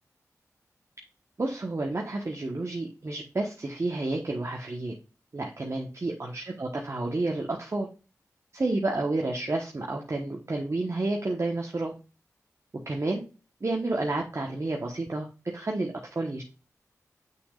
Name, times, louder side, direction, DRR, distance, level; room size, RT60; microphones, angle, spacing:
voice 1, 1.4-4.9 5.3-7.9 8.5-11.9 12.9-13.2 13.6-15.3 15.5-16.4, right 2 dB, 50° right, 1 dB, 1.2 m, -30 dB
6.2 x 6.2 x 2.4 m, 0.32 s
cardioid pair, 40°, 6 cm